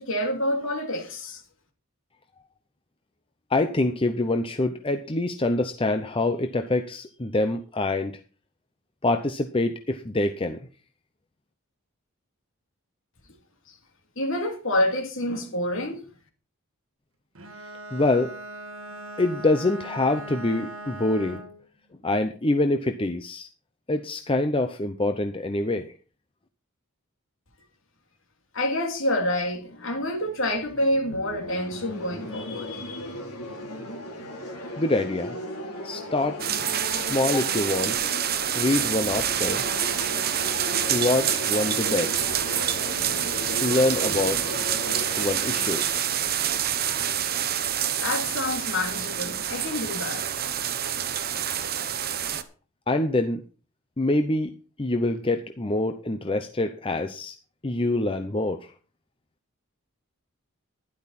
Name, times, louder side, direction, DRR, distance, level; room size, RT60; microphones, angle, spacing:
voice 1, 0.0-1.4 13.7-13.8 14.2-16.0 28.5-33.2 48.0-50.3, left 1 dB, 60° left, 3.0 m, -28 dB
voice 2, 3.5-8.2 9.0-10.6 17.9-18.3 19.2-21.4 22.0-23.5 23.9-25.9 34.8-35.4 35.8-36.4 36.9-38.0 38.5-39.6 40.9-42.3 43.6-44.6 45.2-45.8 52.9-53.4 54.0-54.5 54.8-57.3 57.6-58.6, left 2 dB, 25° left, 0.7 m, -25 dB
Bowed string instrument, 17.3-21.6, right 1 dB, 65° right, 1.6 m, -40 dB
sound 1, 29.6-47.4, left 1 dB, 80° left, 3.4 m, -37 dB
sound 2, 36.4-52.4, right 9 dB, 45° right, 1.0 m, -27 dB
12.0 x 11.0 x 4.2 m
head